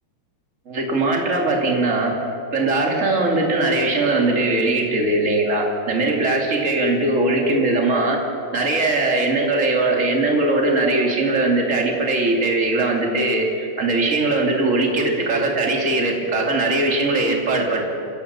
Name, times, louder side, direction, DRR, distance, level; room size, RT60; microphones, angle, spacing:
voice 1, 0.6-2.2 2.5-8.2 8.5-13.5 13.8-17.9, right 2 dB, 30° right, 0 dB, 1.4 m, -20 dB
27.0 x 17.0 x 7.0 m, 2.8 s
omnidirectional pair, 6.0 m